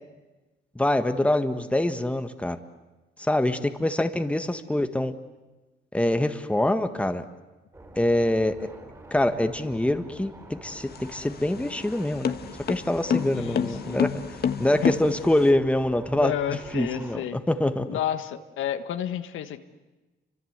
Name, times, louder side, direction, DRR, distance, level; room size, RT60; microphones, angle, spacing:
voice 1, 0.7-2.6 3.2-5.1 5.9-7.2 8.0-8.6 9.1-12.3 12.7-14.1 14.6-16.3 16.7-17.2 17.5-18.0, left 1 dB, 5° left, 8 dB, 1.5 m, -24 dB
sound 1, 7.7-17.2, right 2 dB, 15° right, 4.9 m, -47 dB
sound 2, 10.8-15.5, left 7 dB, 55° left, 1.5 m, -29 dB
voice 2, 13.3-14.1 14.8-14.9 16.1-17.4 17.9-19.6, left 10 dB, 80° left, 9 dB, 1.5 m, -31 dB
29.0 x 25.5 x 8.1 m, 1.1 s
cardioid pair, 90°, 20 cm